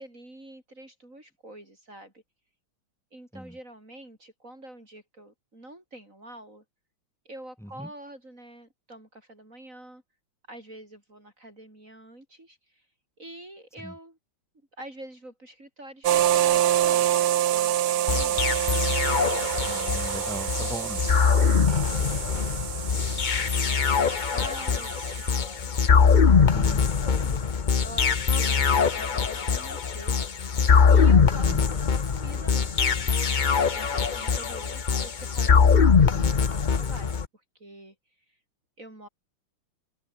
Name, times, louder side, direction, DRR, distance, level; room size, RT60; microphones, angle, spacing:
voice 1, 0.0-2.2 3.1-6.6 7.2-10.0 10.5-12.8 13.2-14.2 14.8-19.1 21.4-25.7 26.0-30.3 30.9-33.1 33.4-37.2 37.6-37.9 38.8-39.1, right 1 dB, 35° right, 6.4 m, -46 dB
voice 2, 7.6-7.9 13.8-13.9 19.6-21.1 26.5-26.8 31.5-31.6 36.0-36.3, equal, ahead, 6.8 m, -39 dB
sound 1, 16.0-25.3, right 12 dB, 85° right, 1.9 m, -27 dB
sound 2, 18.1-37.3, left 6 dB, 50° left, 0.5 m, -22 dB
open air
omnidirectional pair, 2.3 m